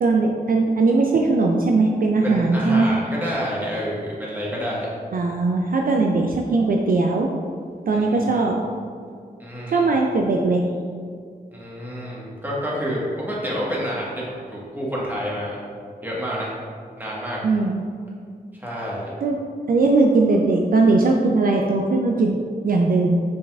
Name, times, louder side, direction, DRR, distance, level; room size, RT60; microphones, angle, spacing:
voice 1, 0.0-2.9 5.1-7.3 7.9-8.6 9.7-10.7 17.4-17.8 19.2-19.3 19.7-23.2, right 3 dB, 60° right, 1 dB, 0.4 m, -19 dB
voice 2, 2.2-4.9 7.9-8.4 9.4-9.8 11.5-15.6 16.0-16.5 17.0-17.4 18.5-19.1, equal, 10° right, -6 dB, 1.4 m, -29 dB
5.1 x 3.5 x 2.4 m, 2.1 s
cardioid pair, 45°, 17 cm